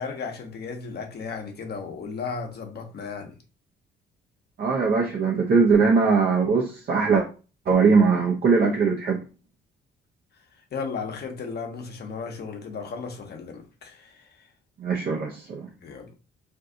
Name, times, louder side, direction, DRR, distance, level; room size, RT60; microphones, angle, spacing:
voice 1, 0.0-3.4 10.7-14.5 15.8-16.2, left 5 dB, 55° left, 1.0 m, -35 dB
voice 2, 4.6-7.3 7.7-9.2 14.8-15.7, right 5 dB, 50° right, 0.7 m, -21 dB
2.6 x 2.4 x 3.7 m
cardioid pair, 90°, 20 cm